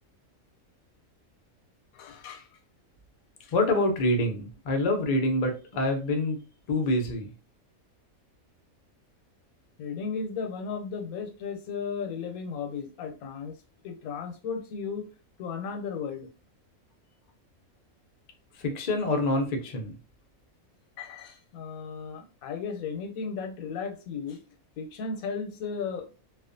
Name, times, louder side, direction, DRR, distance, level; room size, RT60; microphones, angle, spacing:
voice 1, 1.9-2.6 3.4-3.5 9.8-13.5 13.8-15.1 15.4-16.3 21.0-24.4 24.8-26.1, left 5 dB, 85° left, 5 dB, 1.0 m, -35 dB
voice 2, 3.5-6.4 6.7-7.3 18.6-19.9, left 1 dB, 65° left, 3 dB, 0.4 m, -26 dB
2.4 x 2.3 x 2.5 m, 0.34 s
omnidirectional pair, 1.5 m